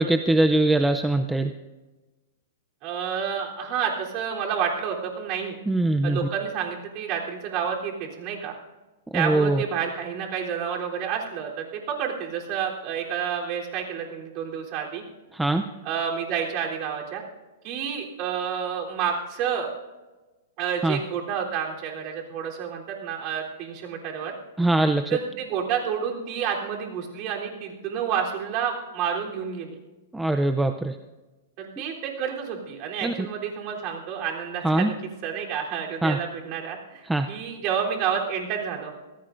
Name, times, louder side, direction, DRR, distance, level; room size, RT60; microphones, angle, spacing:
voice 1, 0.0-1.5 5.7-6.2 9.1-9.6 15.3-15.6 20.8-21.0 24.6-25.2 30.1-30.9 33.0-33.1 34.6-34.9 36.0-36.2 37.1-37.3, right 2 dB, 5° right, 7 dB, 0.5 m, -22 dB
voice 2, 2.8-5.6 6.0-8.5 9.1-15.0 15.8-17.2 17.6-19.7 20.6-24.4 25.1-29.8 31.6-34.9 35.2-39.0, right 7 dB, 35° right, -1 dB, 3.4 m, -29 dB
25.5 x 17.5 x 2.6 m, 1.2 s
hypercardioid pair, 155°, 0 cm